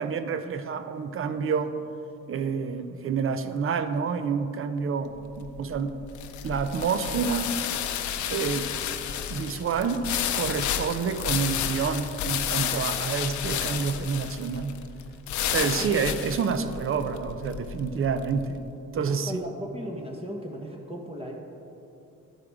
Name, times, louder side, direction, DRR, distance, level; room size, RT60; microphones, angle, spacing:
voice 1, 0.0-1.7 2.3-6.0 6.4-7.5 8.3-8.7 9.3-10.1 10.3-14.7 15.5-18.6 18.9-19.4, right 6 dB, 45° right, 10 dB, 0.6 m, -28 dB
sound 1, 5.2-18.4, left 9 dB, 75° left, 0.6 m, -31 dB
voice 2, 15.5-15.9 16.1-16.2 19.1-21.3, equal, 20° right, 0 dB, 1.3 m, -37 dB
11.5 x 4.9 x 4.9 m, 2.7 s
cardioid pair, 90°, 30 cm